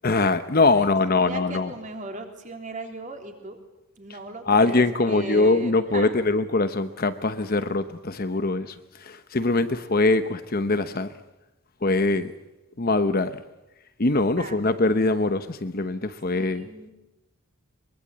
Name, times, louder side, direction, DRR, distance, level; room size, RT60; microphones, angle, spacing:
voice 1, 0.0-1.7 4.5-11.1 11.8-12.3 12.8-13.4 14.0-16.7, left 3 dB, 40° left, 0.9 m, -22 dB
voice 2, 0.7-3.6 4.0-6.1 14.4-14.6 16.3-16.9, right 2 dB, 35° right, 3.4 m, -37 dB
23.0 x 23.0 x 8.6 m
head